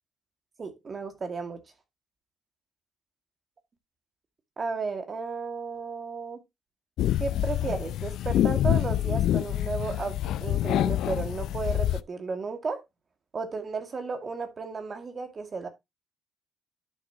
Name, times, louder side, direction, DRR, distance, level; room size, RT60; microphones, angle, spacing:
voice 1, 0.6-1.6 4.6-6.4 7.2-12.8 13.3-15.7, right 4 dB, 40° right, 2.0 m, -34 dB
sound 1, 7.0-12.0, left 12 dB, 80° left, 0.4 m, -26 dB
11.0 x 6.2 x 2.8 m
cardioid pair, 90°, 0 cm